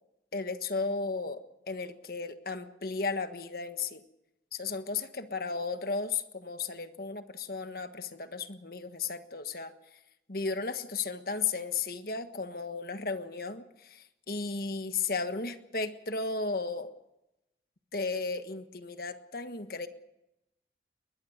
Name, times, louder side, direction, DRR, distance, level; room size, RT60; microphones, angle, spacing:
voice 1, 0.3-1.4 1.7-4.0 4.5-9.7 10.3-16.9 17.9-19.9, left 4 dB, 55° left, 9 dB, 1.4 m, -34 dB
21.0 x 21.0 x 6.5 m, 0.90 s
head